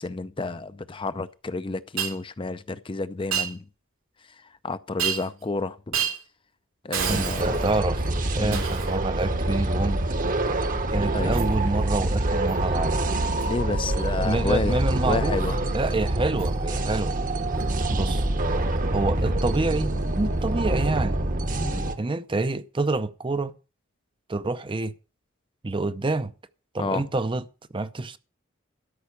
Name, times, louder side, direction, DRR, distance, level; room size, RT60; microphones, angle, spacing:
voice 1, 0.0-3.6 4.6-6.0 6.8-7.7 8.4-8.6 11.1-11.3 13.4-15.6 21.6-21.9 26.8-27.1, left 3 dB, 25° left, 0.5 m, -30 dB
Shatter, 2.0-2.2 3.3-3.5 5.0-5.4 5.9-6.2 6.9-7.8 8.5-9.0 11.3-11.5 12.5-12.7 13.4-13.6 16.4-16.5 17.6-17.7, right 9 dB, 80° right, 2.7 m, -29 dB
sound 1, 7.0-21.9, right 1 dB, 40° right, 1.1 m, -26 dB
voice 2, 7.1-8.0 8.3-10.0 10.9-13.0 14.2-15.4 15.7-17.2 17.9-18.2 18.9-21.2 22.0-23.5 24.3-24.9 25.6-26.3 26.7-27.4 27.7-28.2, right 2 dB, 25° right, 0.6 m, -27 dB
13.0 x 5.7 x 8.3 m
head